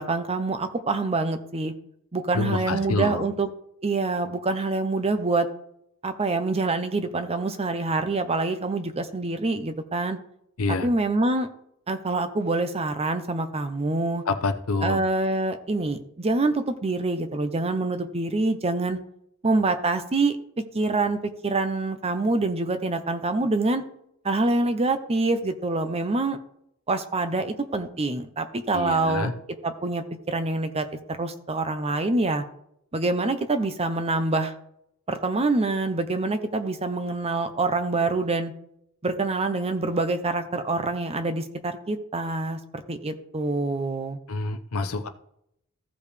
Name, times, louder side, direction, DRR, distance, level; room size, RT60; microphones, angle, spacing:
voice 1, 0.0-1.7 2.1-3.5 3.8-5.5 6.0-10.2 10.8-11.5 11.9-14.2 14.8-19.0 19.4-20.4 20.7-23.8 24.2-26.4 26.9-29.3 29.6-30.9 31.2-32.4 32.9-34.5 35.1-38.5 39.0-42.6 42.9-44.2, right 3 dB, 30° right, 8 dB, 0.7 m, -26 dB
voice 2, 2.3-3.3 10.6-10.9 14.3-15.0 28.7-29.3 44.3-45.1, left 3 dB, 70° left, 9 dB, 0.8 m, -27 dB
15.0 x 5.2 x 3.3 m, 0.73 s
head